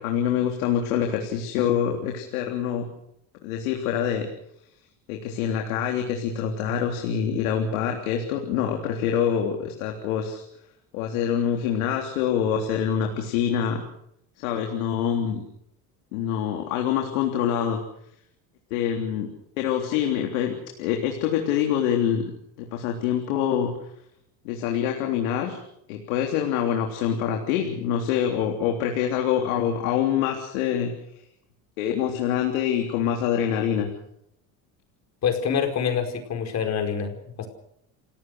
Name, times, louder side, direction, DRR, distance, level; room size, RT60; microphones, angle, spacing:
voice 1, 0.0-2.9 3.4-4.3 5.1-10.4 10.9-13.8 14.4-15.4 16.1-17.8 18.7-19.3 19.6-22.3 22.7-23.7 24.5-25.6 25.9-30.9 31.8-33.9, left 9 dB, 90° left, 2 dB, 3.5 m, -25 dB
voice 2, 35.2-37.5, left 7 dB, 40° left, 5 dB, 4.9 m, -26 dB
29.5 x 17.0 x 6.5 m, 0.75 s
supercardioid pair, 125°, 41 cm